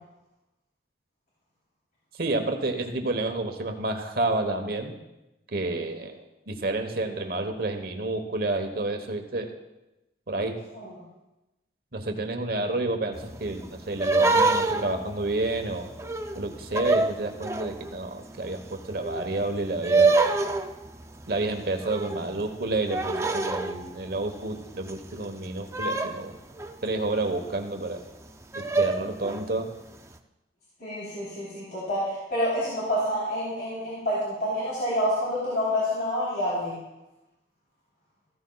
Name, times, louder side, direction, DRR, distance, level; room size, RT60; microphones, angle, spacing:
voice 1, 2.2-4.9 5.5-6.2 6.5-9.5 10.3-10.6 11.9-15.9 16.3-20.2 21.3-26.4 26.8-28.0 28.5-29.7, right 2 dB, 55° right, 5 dB, 1.1 m, -30 dB
sound 1, 13.1-17.9 18.4-25.1 25.4-27.1 27.6-27.7 28.1-28.2 28.5-29.7, right 3 dB, 15° right, 0.5 m, -26 dB
voice 2, 30.8-36.8, equal, 55° left, -8 dB, 3.7 m, -28 dB
14.5 x 13.5 x 2.3 m, 0.99 s
head